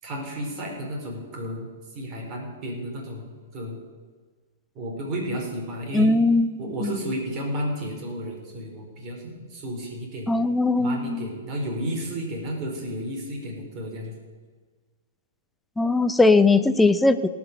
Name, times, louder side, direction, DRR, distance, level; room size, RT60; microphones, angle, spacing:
voice 1, 0.0-3.8 4.7-6.1 6.6-10.4 10.8-14.1, equal, 35° right, 0 dB, 4.6 m, -32 dB
voice 2, 5.9-6.9 10.3-11.2 15.8-17.3, left 3 dB, 5° left, 11 dB, 0.7 m, -20 dB
18.5 x 6.2 x 6.8 m, 1.5 s
hypercardioid pair, 120°, 0 cm